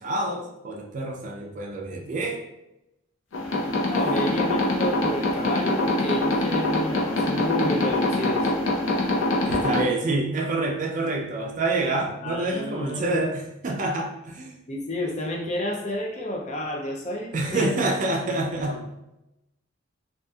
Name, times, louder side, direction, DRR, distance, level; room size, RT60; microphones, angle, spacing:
voice 1, 0.0-2.4 9.4-14.6 17.3-18.8, right 2 dB, 40° right, 1 dB, 0.4 m, -27 dB
sound 1, 3.3-9.8, left 1 dB, 85° left, 0.5 m, -24 dB
voice 2, 3.8-8.5 12.2-13.2 14.7-17.9 18.7-18.9, left 1 dB, 35° left, 0 dB, 0.4 m, -30 dB
2.7 x 2.4 x 2.3 m, 0.91 s
head